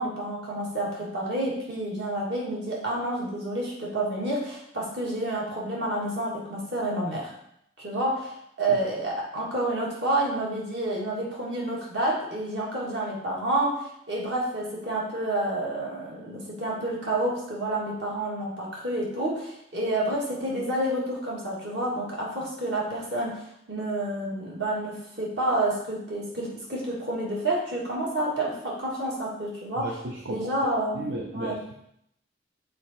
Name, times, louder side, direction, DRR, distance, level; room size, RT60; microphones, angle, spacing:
voice 1, 0.0-7.3 7.8-29.9 30.3-31.1 31.3-31.6, right 1 dB, 70° right, -4 dB, 2.1 m, -29 dB
voice 2, 29.8-30.5 30.9-31.8, right 2 dB, 85° right, 0 dB, 0.7 m, -34 dB
6.6 x 4.2 x 4.3 m, 0.76 s
head